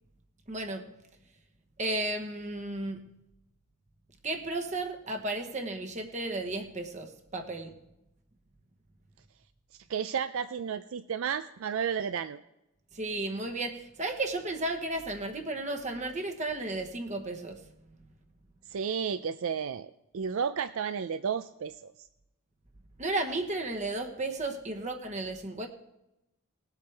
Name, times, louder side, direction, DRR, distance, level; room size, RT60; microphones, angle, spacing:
voice 1, 0.5-0.9 1.8-3.0 4.2-7.8 12.9-17.6 23.0-25.7, right 2 dB, 35° right, 1.1 m, -34 dB
voice 2, 9.9-12.4 18.7-21.9, right 7 dB, 65° right, 0.4 m, -32 dB
20.0 x 8.2 x 3.4 m
head